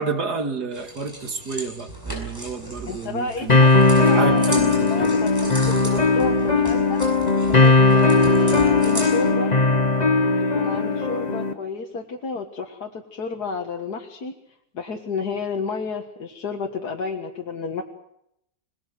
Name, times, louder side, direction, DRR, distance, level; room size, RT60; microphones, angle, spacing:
voice 1, 0.0-3.6 4.0-5.1, right 4 dB, 85° right, 6 dB, 2.7 m, -29 dB
sound 1, 0.7-9.3, right 1 dB, 15° right, 7.6 m, -36 dB
voice 2, 2.9-4.5 4.9-7.0 7.5-9.5 10.5-14.3 14.7-17.8, left 4 dB, 75° left, 3 dB, 2.3 m, -31 dB
sound 2, 3.5-11.5, left 3 dB, 25° left, 1.5 m, -18 dB
26.5 x 19.5 x 7.8 m, 0.81 s
omnidirectional pair, 1.7 m